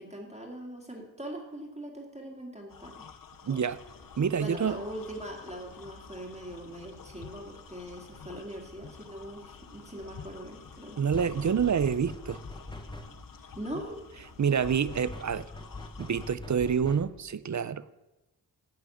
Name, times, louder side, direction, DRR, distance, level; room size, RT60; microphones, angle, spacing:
voice 1, 0.0-3.1 3.5-3.6 4.4-11.0 13.5-14.0, right 1 dB, 15° right, -1 dB, 2.1 m, -41 dB
sound 1, 2.7-16.4, left 7 dB, 55° left, 0.7 m, -51 dB
voice 2, 3.4-3.8 4.2-4.8 11.0-12.4 14.4-15.4 16.0-17.9, right 7 dB, 45° right, 16 dB, 0.5 m, -27 dB
sound 2, 3.7-14.9, left 2 dB, 85° left, 1.6 m, -55 dB
sound 3, 11.1-13.4 14.6-17.3, left 2 dB, 10° left, 1.1 m, -43 dB
10.5 x 6.1 x 8.5 m, 1.0 s
wide cardioid pair, 75°, 40 cm